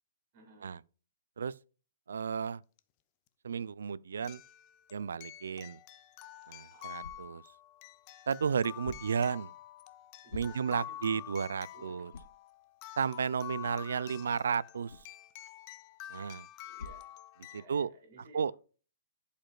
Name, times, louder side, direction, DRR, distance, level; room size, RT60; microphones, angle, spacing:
voice 1, 0.3-0.8 6.7-7.1 10.2-11.0 11.7-12.2 16.6-17.2 17.5-18.5, right 2 dB, 25° right, 2.4 m, -57 dB
voice 2, 2.1-2.6 3.4-4.4 4.9-5.8 6.5-7.4 8.3-9.5 10.3-12.1 13.0-14.9 16.1-16.4 17.5-17.9 18.3-18.5, right 6 dB, 70° right, 0.3 m, -33 dB
sound 1, 2.8-2.9 4.2-17.6, left 12 dB, 20° left, 0.3 m, -48 dB
sound 2, 6.1-17.9, left 4 dB, 65° left, 0.8 m, -54 dB
11.5 x 5.2 x 2.3 m
hypercardioid pair, 180°, 0 cm